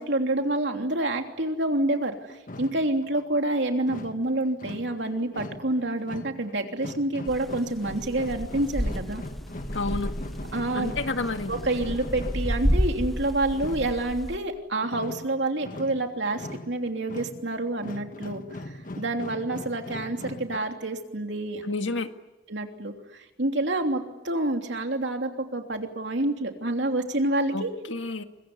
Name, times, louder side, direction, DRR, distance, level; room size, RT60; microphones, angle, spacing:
voice 1, 0.0-9.2 10.5-10.9 11.5-21.6 22.5-27.7, right 2 dB, 65° right, 4 dB, 3.2 m, -28 dB
sound 1, 1.9-20.6, left 1 dB, 45° left, 1.4 m, -41 dB
sound 2, 7.3-14.4, equal, ahead, 1.2 m, -31 dB
voice 2, 9.7-10.1 10.8-11.5 21.6-22.1 27.5-28.2, left 3 dB, 85° left, 7 dB, 1.9 m, -30 dB
25.0 x 23.0 x 9.8 m, 1.0 s
head